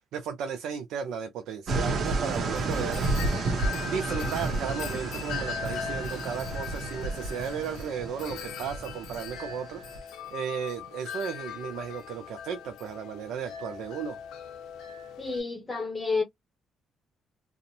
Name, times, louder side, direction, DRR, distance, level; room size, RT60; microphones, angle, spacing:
voice 1, 0.1-3.0 3.8-14.2, right 7 dB, 80° right, 0.4 m, -35 dB
sound 1, 1.7-10.0, right 3 dB, 60° right, 0.8 m, -31 dB
Wind chime, 2.0-15.4, left 8 dB, 80° left, 0.5 m, -40 dB
voice 2, 15.2-16.2, left 4 dB, 25° left, 0.7 m, -29 dB
2.5 x 2.0 x 2.6 m
cardioid pair, 75°, 0 cm